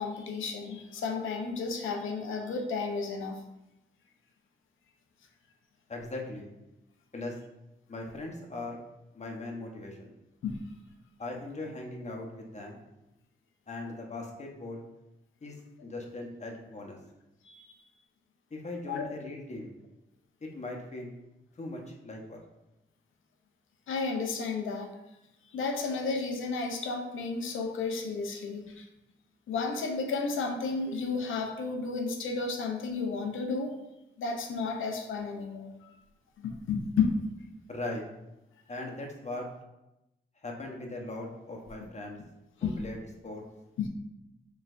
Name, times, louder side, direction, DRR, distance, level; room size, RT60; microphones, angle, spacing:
voice 1, 0.0-3.4 10.4-10.6 17.4-17.6 18.9-19.0 23.9-24.9 25.5-28.9 29.5-33.8 34.2-35.9 36.4-37.1 42.6-42.7 43.8-43.9, left 4 dB, 85° left, 3 dB, 0.6 m, -32 dB
voice 2, 5.9-6.5 7.1-7.4 7.9-8.8 9.1-10.1 11.2-12.8 13.7-14.8 15.4-17.0 18.5-19.7 20.4-21.1 21.6-22.4 37.7-38.0 38.7-39.5 40.4-42.2 42.6-43.0 43.2-43.4, left 2 dB, 35° left, 0 dB, 1.0 m, -39 dB
4.4 x 3.2 x 2.5 m, 0.92 s
cardioid pair, 55°, 20 cm